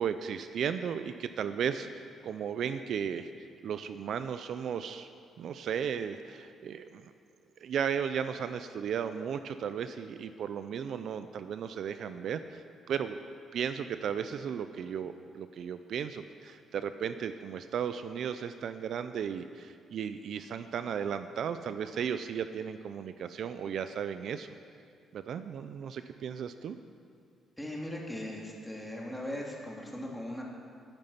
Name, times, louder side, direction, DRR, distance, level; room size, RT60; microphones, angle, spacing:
voice 1, 0.0-5.1 5.4-7.1 7.6-13.2 13.5-24.5 25.1-26.8, right 8 dB, 65° right, 11 dB, 0.5 m, -35 dB
voice 2, 27.6-30.4, left 1 dB, 5° left, -2 dB, 2.8 m, -39 dB
13.5 x 10.5 x 5.7 m, 2.4 s
cardioid pair, 90°, 0 cm